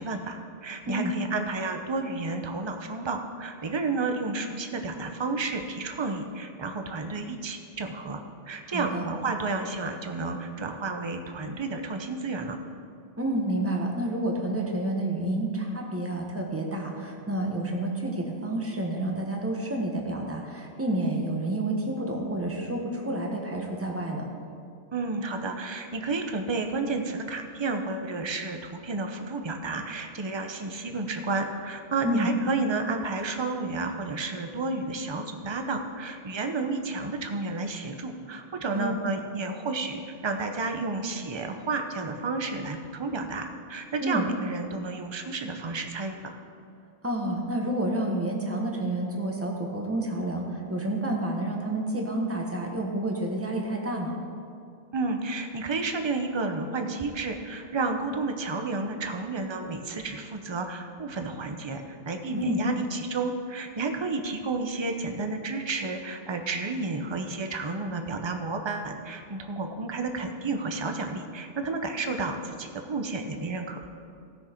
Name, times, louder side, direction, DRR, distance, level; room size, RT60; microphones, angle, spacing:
voice 1, 0.0-8.2 8.5-12.6 24.9-46.4 54.9-73.8, right 3 dB, 30° right, 5 dB, 0.7 m, -31 dB
voice 2, 8.7-9.1 13.2-24.3 32.0-32.3 38.7-39.0 44.0-44.2 47.0-54.2 62.3-62.6, right 1 dB, 10° right, 0 dB, 1.2 m, -29 dB
16.5 x 6.2 x 4.5 m, 2.5 s
omnidirectional pair, 1.3 m